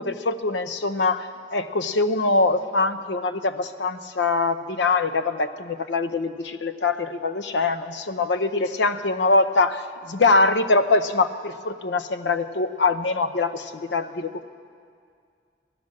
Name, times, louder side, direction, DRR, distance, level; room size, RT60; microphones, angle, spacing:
voice 1, 0.0-14.4, left 3 dB, 85° left, 11 dB, 0.7 m, -23 dB
15.5 x 11.5 x 7.6 m, 2.2 s
head